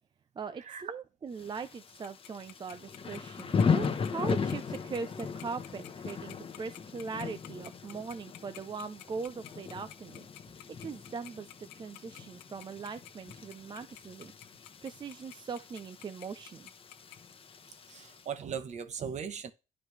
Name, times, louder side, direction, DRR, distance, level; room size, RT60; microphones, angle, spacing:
voice 1, 0.4-10.3 10.8-14.3 14.8-16.7, right 5 dB, 25° right, 0.5 m, -40 dB
Thunder / Rain, 1.4-18.2, left 6 dB, 35° left, 1.0 m, -37 dB
Tick-tock, 2.0-17.2, left 15 dB, 90° left, 0.7 m, -49 dB
voice 2, 17.9-19.5, right 7 dB, 45° right, 0.9 m, -38 dB
9.8 x 5.0 x 3.2 m
cardioid pair, 110°, 17 cm